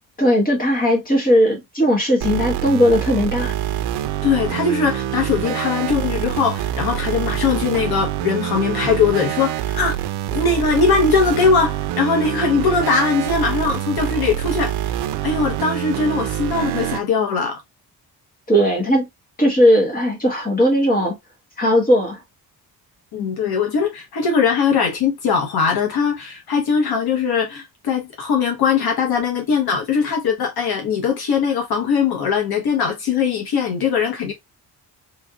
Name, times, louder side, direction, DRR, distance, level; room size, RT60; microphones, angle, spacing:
voice 1, 0.2-3.5 18.5-19.0 19.4-21.2 21.6-22.2, equal, 20° left, 1.6 m, -17 dB
sound 1, 2.2-17.0, right 12 dB, 85° right, 0.5 m, -25 dB
voice 2, 4.2-10.0 10.3-17.6 23.1-34.3, left 5 dB, 70° left, 1.2 m, -20 dB
3.3 x 3.1 x 2.4 m
cardioid pair, 150°, 39 cm